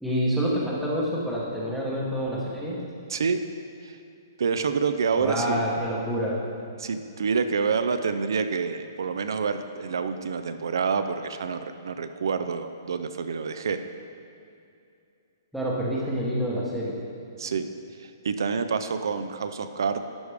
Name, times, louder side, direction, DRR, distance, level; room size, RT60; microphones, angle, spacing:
voice 1, 0.0-2.8 5.2-6.4 15.5-17.0, equal, ahead, -6 dB, 0.9 m, -27 dB
voice 2, 4.4-5.7 6.8-13.8 17.4-17.7 18.0-20.0, right 5 dB, 75° right, 9 dB, 0.4 m, -27 dB
11.5 x 4.8 x 3.4 m, 2.6 s
hypercardioid pair, 170°, 2 cm